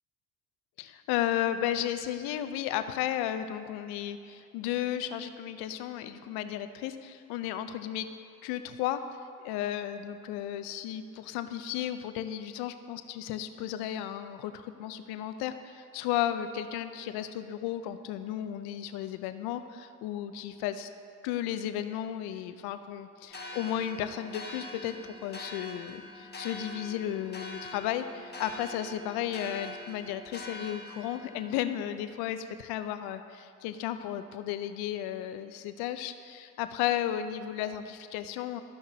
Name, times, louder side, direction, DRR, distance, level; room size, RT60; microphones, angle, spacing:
voice 1, 0.8-8.1 8.4-9.0 9.4-20.9 21.2-38.6, left 11 dB, 80° left, 10 dB, 0.6 m, -34 dB
sound 1, 23.3-31.5, left 1 dB, 25° left, 1.5 m, -44 dB
13.5 x 5.7 x 2.8 m, 2.3 s
supercardioid pair, 70°, 38 cm